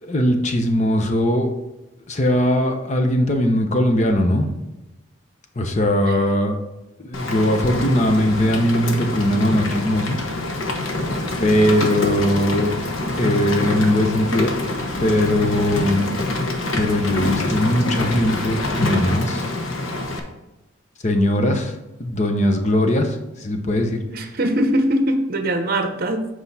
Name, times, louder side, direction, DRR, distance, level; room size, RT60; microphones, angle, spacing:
voice 1, 0.0-1.5 2.1-4.5 5.6-6.6 7.0-10.2 11.4-12.7 13.2-14.5 15.0-16.1 16.7-19.4 21.0-21.7 22.0-24.0, left 1 dB, 35° left, 5 dB, 0.8 m, -20 dB
Rain, 7.1-20.2, left 2 dB, 85° left, 1.1 m, -25 dB
voice 2, 24.1-26.3, right 1 dB, 50° right, 6 dB, 0.8 m, -21 dB
7.8 x 4.8 x 4.2 m, 1.0 s
head